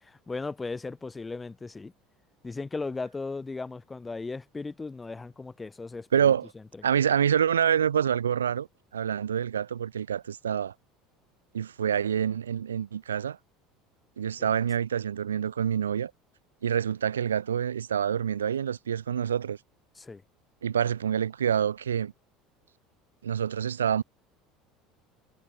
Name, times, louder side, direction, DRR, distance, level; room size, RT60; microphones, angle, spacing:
voice 1, 0.0-1.9 2.4-6.1 14.4-14.5 20.0-20.2, left 3 dB, 20° left, 4.2 m, -36 dB
voice 2, 6.1-6.5 6.8-8.7 8.9-10.7 11.5-13.4 14.2-16.1 16.6-19.6 20.6-22.1 23.2-24.0, right 8 dB, 90° right, 2.7 m, -27 dB
hypercardioid pair, 75°, 0 cm